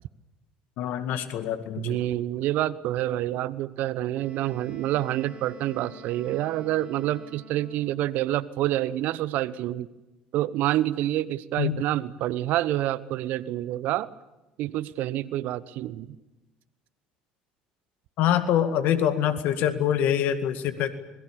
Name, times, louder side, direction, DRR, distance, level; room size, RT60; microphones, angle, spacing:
voice 1, 0.8-2.0 11.6-11.8 18.2-21.0, left 10 dB, 60° left, 10 dB, 2.1 m, -25 dB
voice 2, 1.8-9.9 10.3-14.1 14.6-16.2, right 14 dB, 60° right, 18 dB, 0.9 m, -27 dB
Wind instrument woodwind instrument, 4.1-8.1, right 1 dB, 40° right, 6.5 m, -47 dB
26.5 x 21.5 x 7.1 m, 1.0 s
hypercardioid pair, 60°, 3 cm